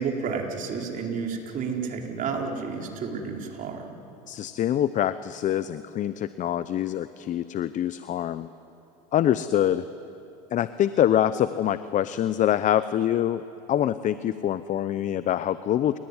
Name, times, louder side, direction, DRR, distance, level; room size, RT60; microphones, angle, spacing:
voice 1, 0.0-4.0, right 5 dB, 40° right, 1 dB, 4.4 m, -31 dB
voice 2, 4.3-8.5 9.1-9.8 10.5-13.4 13.7-16.0, left 11 dB, 35° left, 14 dB, 0.8 m, -25 dB
30.0 x 18.0 x 9.8 m, 2.8 s
supercardioid pair, 105°, 21 cm